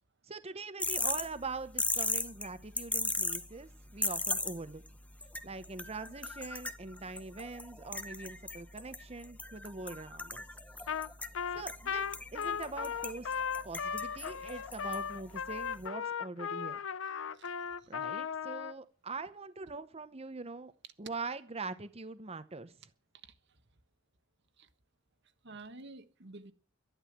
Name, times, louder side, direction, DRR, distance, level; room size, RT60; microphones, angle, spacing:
voice 1, 0.3-4.8 5.4-10.4 11.5-12.0 12.3-13.3 13.6-16.8 17.9-20.7 21.0-22.7, right 3 dB, 30° right, 0.9 m, -43 dB
sound 1, 0.8-15.9, left 2 dB, 5° left, 0.8 m, -39 dB
Trumpet, 10.9-11.1 11.3-18.7, left 7 dB, 65° left, 0.6 m, -36 dB
voice 2, 25.4-26.5, right 3 dB, 55° right, 1.4 m, -50 dB
12.0 x 11.5 x 7.4 m
head